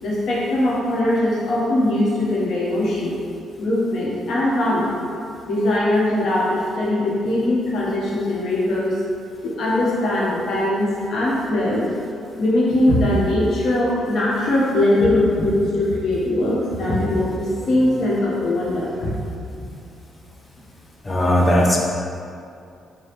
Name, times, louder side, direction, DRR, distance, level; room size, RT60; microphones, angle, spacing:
voice 1, 0.0-3.1 3.6-4.9 5.5-9.0 9.4-11.8 12.4-19.1, left 1 dB, 65° left, -6 dB, 0.9 m, -21 dB
voice 2, 21.1-21.8, equal, 20° left, -1 dB, 0.5 m, -17 dB
5.0 x 2.2 x 3.0 m, 2.5 s
cardioid pair, 90°, 0 cm